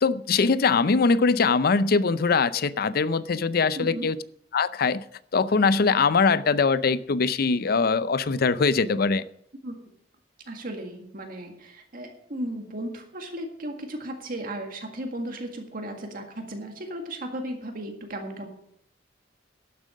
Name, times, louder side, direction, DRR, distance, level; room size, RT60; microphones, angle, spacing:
voice 1, 0.0-4.2 4.5-5.0 5.3-9.2, left 4 dB, 55° left, 16 dB, 0.5 m, -22 dB
voice 2, 3.8-4.1 9.6-9.7 10.5-18.5, right 1 dB, 50° right, 3 dB, 1.8 m, -35 dB
12.0 x 7.5 x 6.3 m, 0.71 s
head